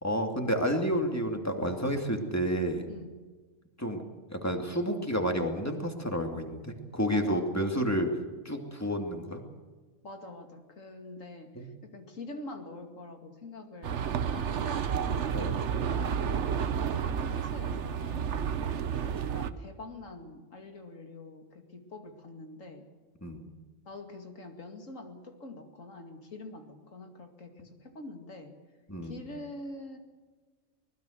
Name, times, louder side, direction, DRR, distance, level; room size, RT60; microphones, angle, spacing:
voice 1, 0.0-2.9 3.8-4.0 4.3-8.1 8.4-9.4 11.6-11.7 15.3-15.6 23.2-23.4 28.9-29.2, equal, 10° left, 3 dB, 2.6 m, -30 dB
voice 2, 2.9-3.2 7.1-7.8 10.0-14.9 15.7-18.4 19.2-22.9 23.9-28.6 29.0-30.0, left 2 dB, 75° left, 5 dB, 2.7 m, -45 dB
sound 1, 13.8-19.5, right 7 dB, 65° right, 1.2 m, -31 dB
24.0 x 20.0 x 6.6 m, 1.4 s
omnidirectional pair, 1.3 m